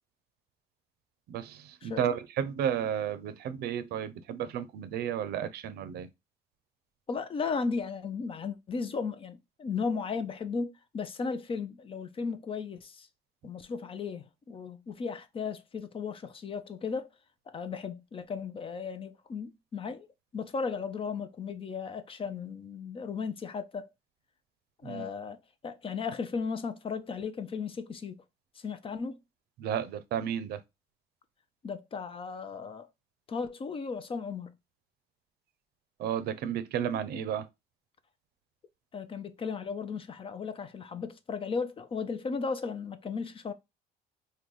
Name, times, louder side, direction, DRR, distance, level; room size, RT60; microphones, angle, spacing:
voice 1, 1.3-6.1 24.8-25.1 29.6-30.6 36.0-37.5, right 9 dB, 70° right, 0.6 m, -32 dB
voice 2, 1.8-2.1 7.1-13.1 13.4-17.1 17.5-20.1 20.3-23.9 24.8-25.4 25.6-28.2 28.6-29.2 31.6-32.9 33.3-34.5 38.9-43.5, left 5 dB, 30° left, 0.5 m, -35 dB
3.7 x 2.2 x 3.1 m
cardioid pair, 110°, 17 cm